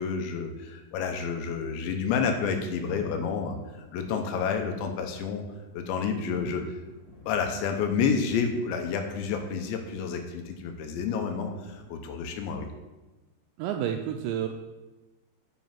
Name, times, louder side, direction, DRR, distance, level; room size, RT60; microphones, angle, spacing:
voice 1, 0.0-3.6 3.9-5.4 5.7-6.7 7.3-12.7, left 6 dB, 80° left, 5 dB, 2.9 m, -29 dB
sound 1, 2.5-11.9, left 2 dB, 55° left, 1.3 m, -50 dB
voice 2, 13.6-14.5, right 10 dB, 85° right, 5 dB, 2.6 m, -29 dB
9.3 x 5.2 x 5.7 m, 1.1 s
omnidirectional pair, 5.5 m